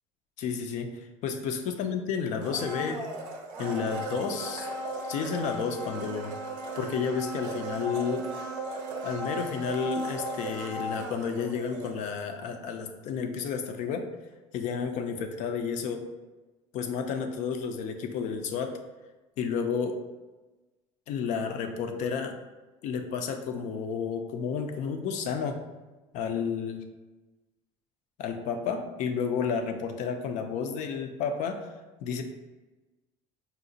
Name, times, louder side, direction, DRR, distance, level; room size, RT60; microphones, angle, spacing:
voice 1, 0.4-3.0 3.6-4.7 5.1-6.3 6.8-8.3 9.0-14.1 14.5-16.0 16.7-18.7 19.4-20.0 21.1-22.3 22.8-25.6 26.1-26.9 28.2-31.7 32.0-32.2, left 6 dB, 60° left, 6 dB, 0.4 m, -31 dB
Domestic sounds home sounds, 2.4-12.3 12.6-12.7, right 1 dB, 80° right, 0.5 m, -36 dB
3.9 x 2.1 x 2.6 m, 1.2 s
supercardioid pair, 90°, 14 cm